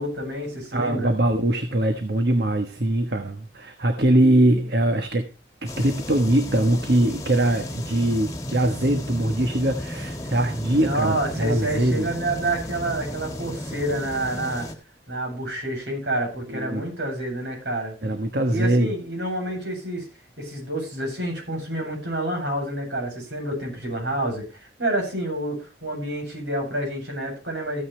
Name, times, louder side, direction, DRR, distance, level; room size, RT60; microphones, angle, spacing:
voice 1, 0.0-1.1 10.8-14.7 15.1-18.0 18.5-20.1 20.4-27.8, right 1 dB, 75° right, 1 dB, 7.8 m, -28 dB
voice 2, 0.7-5.3 5.6-12.1 16.5-16.8 18.0-18.9, right 1 dB, 60° right, 6 dB, 1.3 m, -22 dB
sound 1, 5.7-14.7, left 1 dB, 20° left, 1.7 m, -34 dB
15.0 x 9.4 x 3.3 m, 0.32 s
head